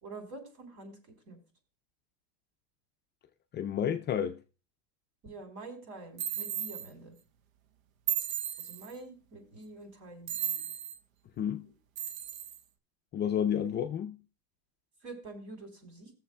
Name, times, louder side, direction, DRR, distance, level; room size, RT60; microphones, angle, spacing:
voice 1, 0.0-1.0 1.3-1.4 5.2-7.1 8.6-10.6 15.0-16.1, right 2 dB, 50° right, 3.7 m, -46 dB
voice 2, 3.5-4.4 11.4-11.7 13.1-14.2, left 9 dB, 25° left, 0.4 m, -30 dB
sound 1, 6.2-6.9 8.1-8.9 10.3-11.0 12.0-12.6, right 10 dB, 85° right, 0.9 m, -34 dB
19.0 x 7.2 x 2.2 m
supercardioid pair, 120°, 39 cm